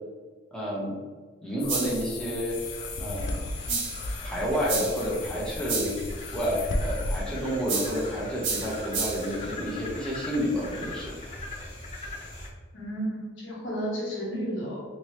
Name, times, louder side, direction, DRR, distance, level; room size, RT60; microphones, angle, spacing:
voice 1, 0.5-1.0 1.4-2.6 3.0-3.4 4.2-6.0 6.3-11.1, equal, 5° left, -6 dB, 0.6 m, -30 dB
sound 1, 1.6-7.2, left 2 dB, 65° left, 0.4 m, -35 dB
sound 2, 1.7-2.1 3.7-4.1 4.7-5.1 5.7-6.1 7.7-8.1 8.4-9.3, right 4 dB, 90° right, 1.0 m, -31 dB
sound 3, 2.5-12.5, left 2 dB, 35° left, 1.1 m, -41 dB
voice 2, 12.7-14.8, right 1 dB, 85° left, -4 dB, 1.1 m, -32 dB
2.9 x 2.7 x 3.2 m, 1.5 s
head